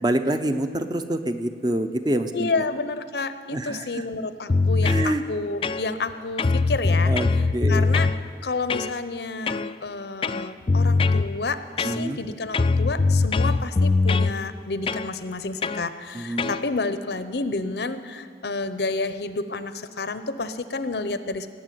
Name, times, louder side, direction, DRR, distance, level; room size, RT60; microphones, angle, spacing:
voice 1, 0.0-2.7 3.5-4.1 4.8-5.2 7.1-7.9 11.8-12.2 16.1-16.5, right 1 dB, 25° right, 8 dB, 0.6 m, -26 dB
voice 2, 2.3-7.1 7.7-8.1 8.4-21.5, left 3 dB, 70° left, 11 dB, 0.7 m, -30 dB
sound 1, 4.5-5.1 5.6-6.1 6.4-8.2 8.7-8.9 9.5-9.7 10.2-11.3 11.8-12.2 12.5-14.3 14.9-15.1 15.6-15.8 16.4-16.6, left 3 dB, 30° left, 0.3 m, -21 dB
18.0 x 7.3 x 9.3 m, 2.1 s
head